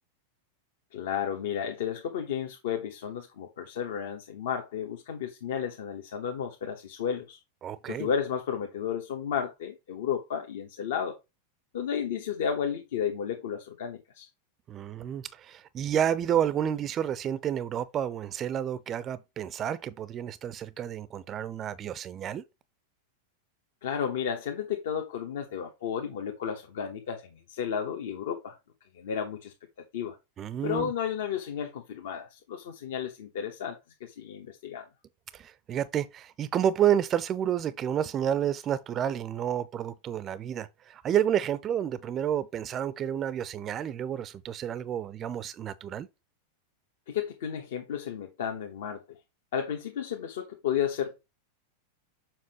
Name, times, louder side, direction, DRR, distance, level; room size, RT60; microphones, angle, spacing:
voice 1, 0.9-7.4 7.9-11.2 11.7-14.3 23.8-28.6 28.9-29.5 29.9-30.2 30.6-34.9 47.1-49.2 49.5-51.2, left 8 dB, 55° left, 1.1 m, -33 dB
voice 2, 7.6-8.1 14.7-22.4 30.4-30.9 35.3-46.1, right 10 dB, 30° right, 0.5 m, -30 dB
7.3 x 5.8 x 3.0 m
figure-of-eight pair, 90°, 0 cm